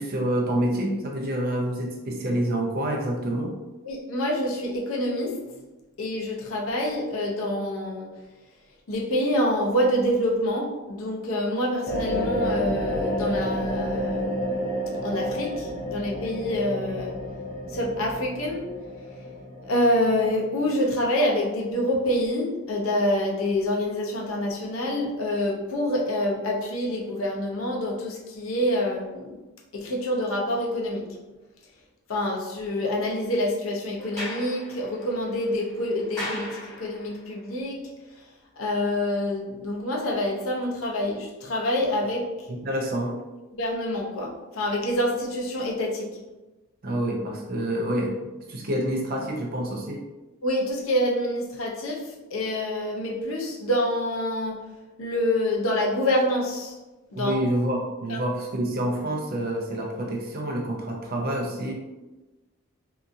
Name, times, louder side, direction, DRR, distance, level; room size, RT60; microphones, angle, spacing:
voice 1, 0.0-3.6 42.6-43.2 46.8-50.0 57.1-61.7, right 1 dB, 45° right, 0 dB, 0.5 m, -27 dB
voice 2, 3.8-5.4 6.0-8.1 8.9-14.5 15.0-17.2 17.7-18.7 19.6-29.4 29.7-31.1 32.1-37.9 38.6-42.5 43.5-46.1 50.4-54.6 55.0-56.8 57.1-57.3 58.1-58.2, left 1 dB, 80° left, -1 dB, 0.6 m, -26 dB
sound 1, 11.9-20.8, equal, 35° left, 0.6 m, -30 dB
Sliding door, 34.0-37.2, left 1 dB, 15° left, 1.2 m, -38 dB
2.8 x 2.5 x 2.5 m, 1.1 s
head